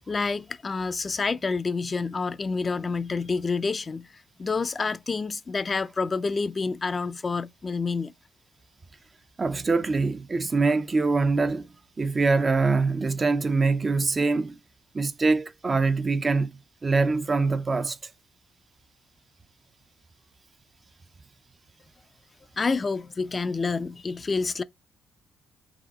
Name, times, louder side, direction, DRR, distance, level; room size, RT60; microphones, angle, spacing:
voice 1, 0.1-4.1 4.4-8.1 22.6-24.6, left 4 dB, 30° left, 0.4 m, -28 dB
voice 2, 9.4-11.7 12.0-14.6 14.9-18.0, right 3 dB, 30° right, 0.5 m, -24 dB
4.8 x 2.7 x 4.0 m
cardioid pair, 90°, 0 cm